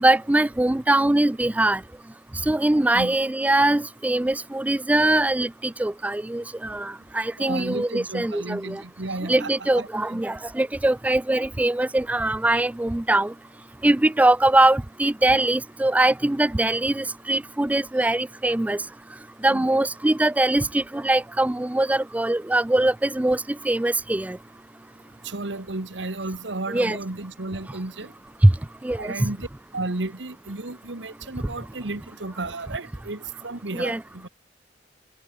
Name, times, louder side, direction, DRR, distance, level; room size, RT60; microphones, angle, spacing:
voice 1, 0.0-1.8 2.4-8.8 9.3-13.3 13.8-18.8 19.4-24.4 26.7-27.0 28.4-28.5 28.8-29.1 31.4-31.5 33.7-34.0, right 1 dB, 10° right, 0.3 m, -22 dB
voice 2, 7.4-10.2 19.5-19.7 25.2-28.1 29.0-29.5 29.7-34.3, right 2 dB, 75° right, 1.6 m, -33 dB
head